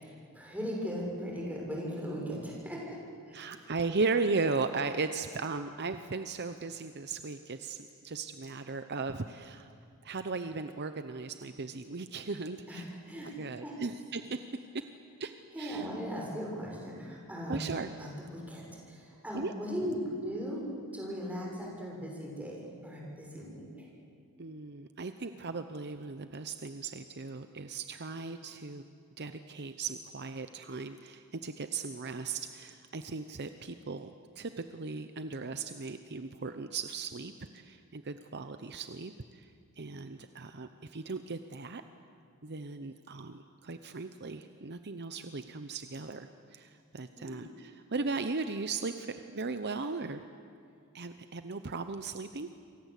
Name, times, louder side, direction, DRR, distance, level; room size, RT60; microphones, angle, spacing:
voice 1, 0.3-3.0 3.3-3.6 12.7-13.3 13.6-13.7 15.5-17.7 18.0-20.6 20.9-23.9 47.2-47.4, equal, 5° right, -2 dB, 6.7 m, -38 dB
voice 2, 3.3-9.7 10.0-12.8 13.2-14.4 14.7-14.9 15.2-15.9 17.5-17.9 19.3-19.5 24.4-28.8 29.2-41.8 42.4-50.2 50.9-52.5, right 4 dB, 50° right, 9 dB, 0.9 m, -37 dB
28.0 x 24.5 x 8.4 m, 2.3 s
head